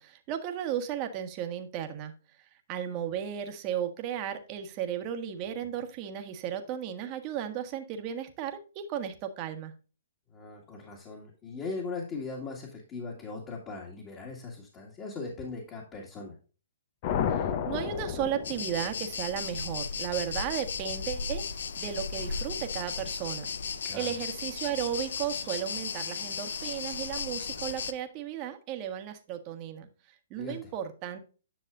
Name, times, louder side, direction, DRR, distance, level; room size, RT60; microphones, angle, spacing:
voice 1, 0.0-2.1 2.7-9.7 17.3-21.4 21.8-29.9 30.3-31.2, right 9 dB, 35° right, 6 dB, 1.4 m, -35 dB
voice 2, 10.3-16.3 23.8-24.1 30.4-30.7, left 4 dB, 25° left, -1 dB, 2.1 m, -39 dB
sound 1, 17.0-19.3, left 8 dB, 45° left, 0.9 m, -31 dB
sound 2, 18.4-27.9, left 5 dB, 70° left, 0.7 m, -35 dB
10.5 x 6.4 x 2.6 m, 0.35 s
hypercardioid pair, 135°, 0 cm